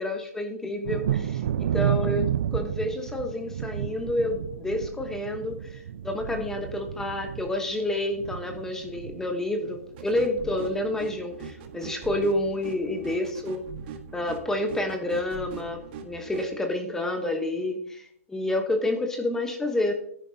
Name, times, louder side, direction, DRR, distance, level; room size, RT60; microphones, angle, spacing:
voice 1, 0.0-2.2 2.5-13.6 14.1-19.9, left 1 dB, 5° left, 5 dB, 1.1 m, -29 dB
Thunder, 0.8-10.3 10.5-11.3 11.7-11.8 12.2-12.4, right 10 dB, 55° right, 0.4 m, -31 dB
sound 1, 10.0-16.5, right 6 dB, 40° right, 1.6 m, -41 dB
14.0 x 10.0 x 2.8 m, 0.66 s
hypercardioid pair, 135°, 8 cm